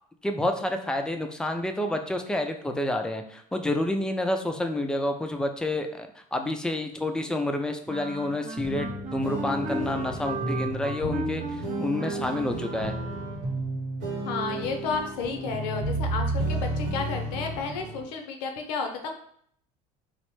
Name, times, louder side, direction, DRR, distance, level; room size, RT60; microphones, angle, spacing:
voice 1, 0.2-12.9, left 1 dB, 5° left, 5 dB, 0.3 m, -29 dB
Wind instrument woodwind instrument, 7.9-13.6, right 2 dB, 40° right, 0.7 m, -37 dB
sound 1, 8.6-18.0, right 2 dB, 65° right, 1.0 m, -32 dB
voice 2, 14.2-19.1, left 5 dB, 80° left, 4 dB, 0.6 m, -32 dB
3.1 x 2.0 x 3.0 m, 0.64 s
hypercardioid pair, 80°, 21 cm